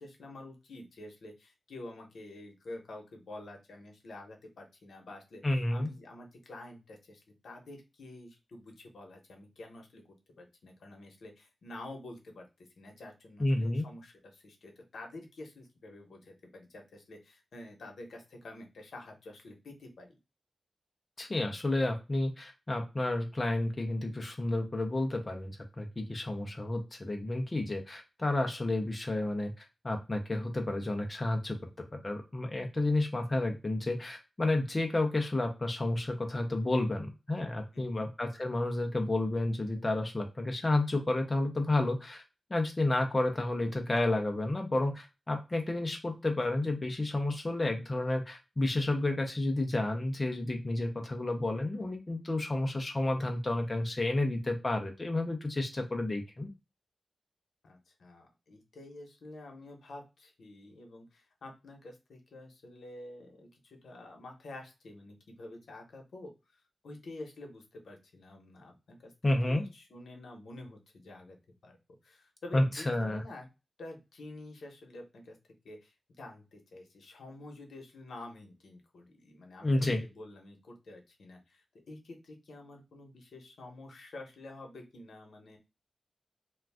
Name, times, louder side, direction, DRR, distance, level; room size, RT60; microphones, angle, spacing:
voice 1, 0.0-20.2 37.7-38.1 57.6-69.1 69.4-71.4 71.6-71.8 72.0-73.5 73.8-75.4 75.6-85.6, left 2 dB, 90° left, 3 dB, 0.8 m, -49 dB
voice 2, 5.4-5.9 13.4-13.9 21.2-42.2 42.5-56.5 69.2-69.6 72.5-73.2 79.6-80.0, left 2 dB, 20° left, 3 dB, 0.5 m, -31 dB
2.4 x 2.2 x 3.3 m, 0.26 s
wide cardioid pair, 165°, 0 cm